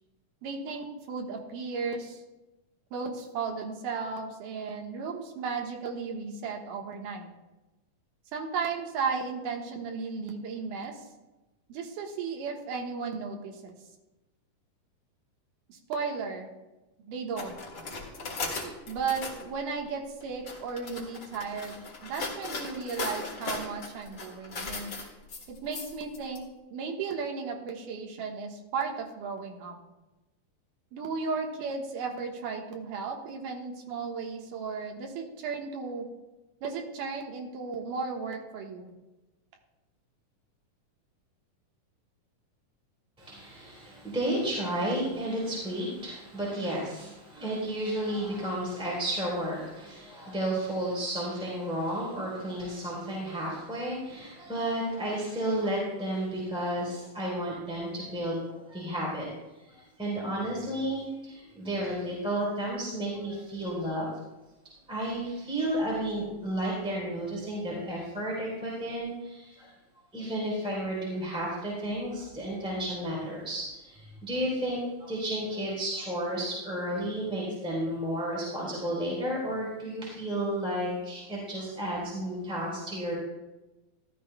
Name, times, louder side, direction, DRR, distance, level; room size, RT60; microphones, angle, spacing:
voice 1, 0.4-2.2 2.9-7.3 8.3-11.1 11.7-13.7 15.7-16.5 17.0-17.6 18.9-25.0 25.5-26.4 26.7-29.8 30.9-36.1 36.6-38.9, right 5 dB, 80° right, 2 dB, 2.8 m, -35 dB
sound 1, 17.4-19.4 20.2-26.4, left 3 dB, 40° left, 2.0 m, -38 dB
voice 2, 43.2-59.3 59.6-64.1 64.9-69.7 70.1-83.2, right 1 dB, ahead, -5 dB, 3.1 m, -32 dB
15.0 x 12.5 x 2.2 m, 1.1 s
omnidirectional pair, 3.8 m